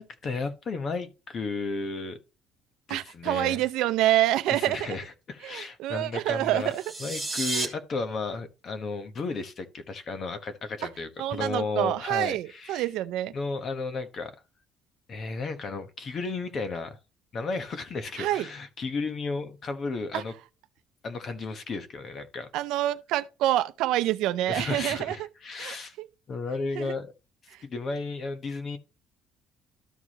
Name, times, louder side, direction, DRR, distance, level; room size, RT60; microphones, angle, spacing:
voice 1, 0.0-2.2 2.9-3.6 4.5-6.7 7.0-12.9 13.3-14.3 15.1-17.0 17.3-20.3 21.0-22.5 24.5-25.9 26.3-27.1 27.4-28.8, left 3 dB, 35° left, 1.1 m, -33 dB
voice 2, 2.9-5.0 5.4-6.8 7.6-7.7 11.2-13.3 18.2-18.5 20.1-20.2 22.5-25.2 25.6-26.1 26.7-26.9, right 14 dB, 75° right, 0.5 m, -27 dB
sound 1, 6.6-7.7, right 2 dB, 5° left, 1.4 m, -31 dB
13.0 x 4.7 x 3.0 m
cardioid pair, 155°, 0 cm